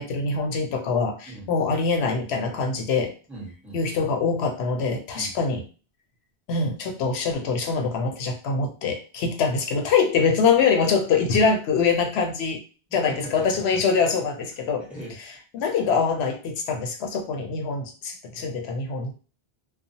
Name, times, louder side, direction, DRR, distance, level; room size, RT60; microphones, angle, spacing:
voice 1, 0.0-3.1 3.7-5.6 6.5-12.6 12.9-14.8 15.5-19.1, left 5 dB, 85° left, 3 dB, 0.9 m, -24 dB
voice 2, 3.3-4.1 5.1-5.4 10.2-10.3 12.9-13.8 14.8-15.1, right 1 dB, ahead, -6 dB, 1.2 m, -40 dB
2.7 x 2.1 x 2.7 m, 0.36 s
omnidirectional pair, 1.0 m